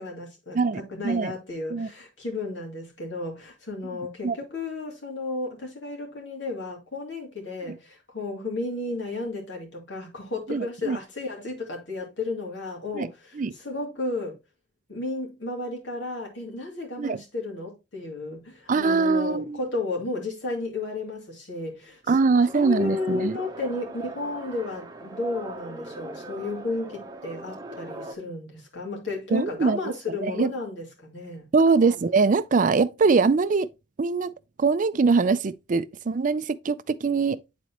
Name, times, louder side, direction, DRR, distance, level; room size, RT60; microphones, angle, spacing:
voice 1, 0.0-0.6 0.9-14.4 14.9-22.0 22.5-31.5, left 2 dB, 70° left, 2.7 m, -33 dB
voice 2, 0.5-1.3 1.7-1.9 3.9-4.4 7.7-7.8 10.5-11.0 12.9-13.1 13.4-13.5 17.0-17.2 18.7-19.6 22.1-23.4 29.3-29.8 30.1-30.5 31.5-33.7 34.0-34.3 34.6-37.4, right 4 dB, 45° right, 0.4 m, -23 dB
sound 1, 22.4-28.1, right 2 dB, 20° right, 0.8 m, -40 dB
9.2 x 4.1 x 3.0 m
head